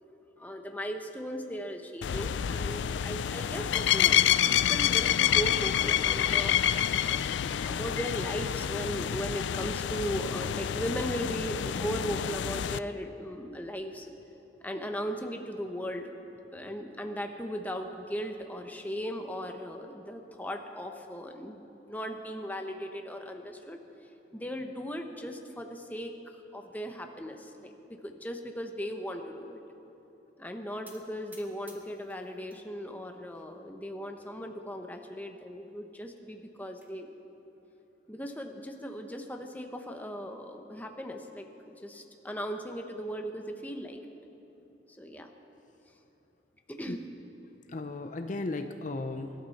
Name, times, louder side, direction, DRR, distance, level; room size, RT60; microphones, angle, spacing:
voice 1, 0.4-6.6 7.0-7.2 7.6-14.1 14.6-16.1 16.5-23.8 24.3-26.1 26.5-27.8 28.0-29.6 30.4-37.1 38.1-44.0 45.0-45.3 46.7-47.0, equal, 10° left, 4 dB, 0.9 m, -37 dB
sound 1, 2.0-12.8, left 10 dB, 80° left, 0.3 m, -28 dB
sound 2, 6.6-13.0, left 3 dB, 65° right, 3.1 m, -53 dB
sound 3, 30.8-32.6 33.0-33.6 34.2-34.3 34.6-34.7 35.1-35.2 36.3-36.9, right 1 dB, 10° right, 1.4 m, -56 dB
voice 2, 47.7-49.3, left 2 dB, 45° left, 7 dB, 0.6 m, -36 dB
24.0 x 12.5 x 4.2 m, 3.0 s
head